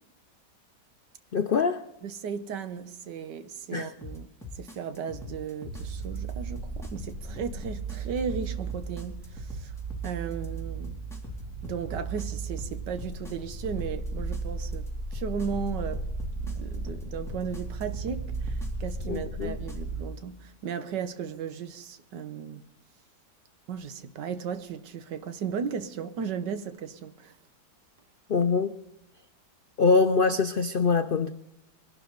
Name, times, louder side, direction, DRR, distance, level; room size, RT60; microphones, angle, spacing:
voice 1, 1.3-1.8 3.7-3.9 19.0-19.6 28.3-28.8 29.8-31.3, left 4 dB, 80° left, 0.4 m, -24 dB
voice 2, 2.0-9.7 10.0-11.0 11.6-16.0 16.4-22.6 23.7-27.3, right 6 dB, 85° right, 1.6 m, -36 dB
sound 1, 4.0-19.8, left 2 dB, ahead, 2.3 m, -42 dB
sound 2, 5.7-20.0, right 3 dB, 25° right, 4.7 m, -35 dB
22.0 x 12.0 x 4.0 m
omnidirectional pair, 1.8 m